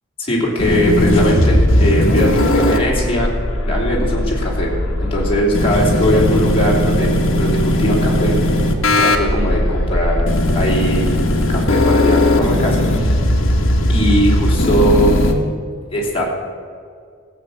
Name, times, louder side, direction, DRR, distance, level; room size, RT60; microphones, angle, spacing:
voice 1, 0.2-3.3 3.6-4.7 5.0-7.1 7.4-8.7 9.0-10.3 10.5-11.2 11.5-13.2 13.9-15.1 15.9-16.3, equal, 30° left, -4 dB, 3.1 m, -19 dB
sound 1, 0.6-15.3, left 1 dB, 70° left, 1.4 m, -17 dB
15.5 x 8.0 x 6.9 m, 2.2 s
head